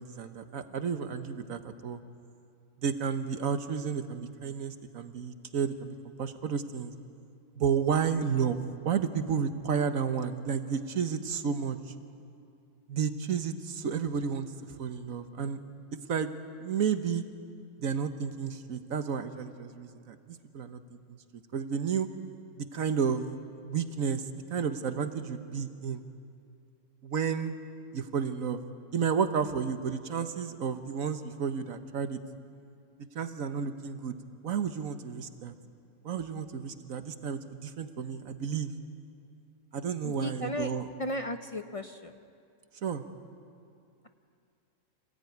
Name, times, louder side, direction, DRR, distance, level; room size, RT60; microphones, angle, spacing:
voice 1, 0.0-2.0 2.8-6.9 7.6-11.8 12.9-14.5 14.8-15.6 16.1-16.3 16.6-17.2 17.8-20.8 21.5-22.1 22.6-23.3 23.6-24.2 24.5-26.0 27.0-27.5 27.9-28.6 28.9-32.2 33.1-34.2 34.4-35.5 36.0-38.7 39.7-40.9 42.8-43.0, right 7 dB, 85° right, 9 dB, 1.5 m, -31 dB
voice 2, 40.0-40.7 41.0-42.2, left 1 dB, 30° left, 7 dB, 0.7 m, -35 dB
26.5 x 17.0 x 9.4 m, 2.5 s
omnidirectional pair, 1.4 m